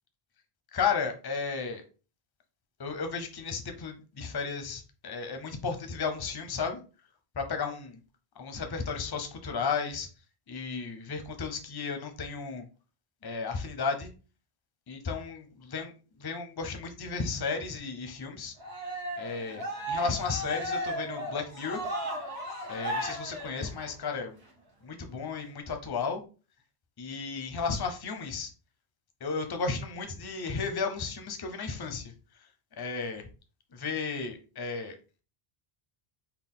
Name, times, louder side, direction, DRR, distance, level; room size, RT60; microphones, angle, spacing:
voice 1, 0.7-1.8 2.8-6.8 7.4-8.0 8.4-10.1 10.5-12.6 13.2-14.1 14.9-15.9 16.2-18.5 19.2-21.9 22.7-24.4 24.8-26.2 27.0-28.5 29.2-32.0 32.8-33.3 33.7-35.0, left 5 dB, 30° left, 6 dB, 0.5 m, -34 dB
Cheering, 18.6-24.1, equal, 75° right, 1.5 m, -35 dB
4.0 x 2.3 x 3.6 m, 0.34 s
omnidirectional pair, 1.0 m